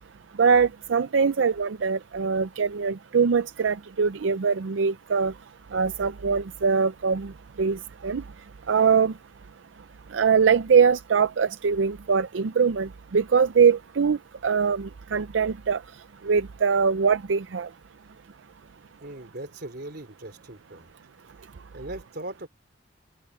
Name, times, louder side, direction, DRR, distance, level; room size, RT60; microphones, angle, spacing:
voice 1, 0.4-5.3 5.7-7.3 7.6-7.8 8.0-8.2 8.7-9.1 10.1-14.2 14.4-15.8 16.3-17.7, right 6 dB, 90° right, 0.5 m, -22 dB
voice 2, 19.0-20.9 21.7-22.5, right 1 dB, 60° right, 3.6 m, -39 dB
open air
head